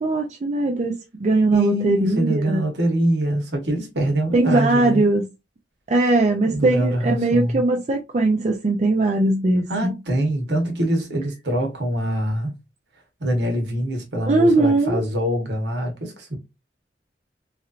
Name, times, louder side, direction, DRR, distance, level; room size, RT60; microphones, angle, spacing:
voice 1, 0.0-2.6 4.3-5.3 5.9-9.9 14.3-15.0, right 2 dB, 40° right, 0.4 m, -20 dB
voice 2, 1.5-5.0 6.4-7.6 9.7-12.5 13.2-16.4, right 1 dB, 75° right, 1.1 m, -24 dB
3.1 x 2.7 x 2.4 m
head